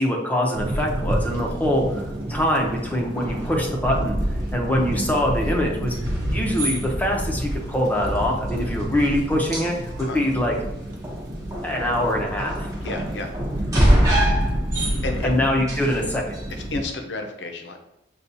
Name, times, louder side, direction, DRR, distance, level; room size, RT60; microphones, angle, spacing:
voice 1, 0.0-4.2 4.5-5.9 6.3-10.5 11.6-12.7 14.9-16.2, left 1 dB, 10° left, -1 dB, 0.6 m, -24 dB
sound 1, 0.5-16.8, equal, 50° right, 0.7 m, -29 dB
sound 2, 0.6-16.8, right 1 dB, 20° right, 1.0 m, -29 dB
voice 2, 12.8-13.3 15.0-15.4 16.7-17.8, left 2 dB, 70° left, 4 dB, 0.6 m, -31 dB
6.6 x 2.3 x 2.7 m, 0.91 s
head